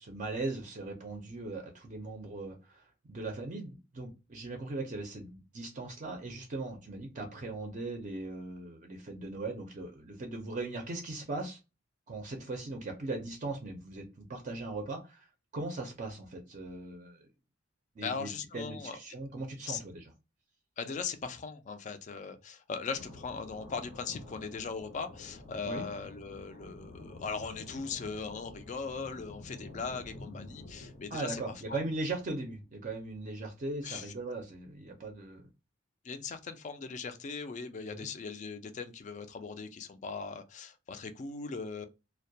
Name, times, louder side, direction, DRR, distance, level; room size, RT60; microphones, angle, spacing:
voice 1, 0.0-11.6 12.1-15.3 15.5-17.3 18.0-20.1 25.6-25.8 31.1-35.5 37.9-38.1, right 2 dB, 40° right, 0.4 m, -39 dB
voice 2, 18.0-19.0 19.7-19.8 20.8-31.4 31.7-31.8 33.8-34.1 36.0-41.9, left 5 dB, 40° left, 0.3 m, -39 dB
sound 1, 22.9-32.8, left 2 dB, 75° left, 0.6 m, -50 dB
2.2 x 2.1 x 2.6 m
head